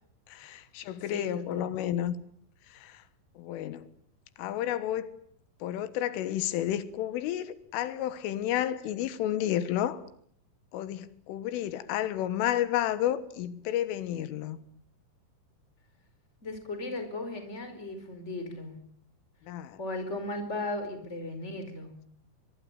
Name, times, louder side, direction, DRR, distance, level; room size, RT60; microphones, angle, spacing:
voice 1, 0.3-2.2 2.7-3.0 3.4-3.9 4.4-5.1 5.6-10.0 10.7-14.6 19.5-19.8, left 12 dB, 90° left, 3.9 m, -31 dB
voice 2, 1.1-1.7 16.4-18.8 19.8-22.0, left 2 dB, 15° left, 4.6 m, -36 dB
25.0 x 22.0 x 9.2 m
omnidirectional pair, 5.6 m